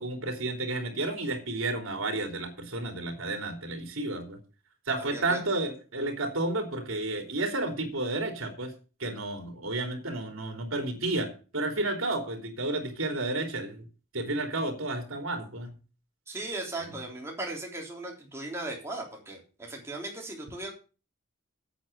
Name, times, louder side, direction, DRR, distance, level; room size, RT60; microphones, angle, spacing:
voice 1, 0.0-4.4 4.9-8.7 9.0-11.3 11.5-13.8 14.1-15.7, right 2 dB, 75° right, 4 dB, 3.4 m, -31 dB
voice 2, 5.0-5.4 16.3-20.7, right 2 dB, 15° right, -1 dB, 3.4 m, -37 dB
8.8 x 8.3 x 6.8 m, 0.35 s
head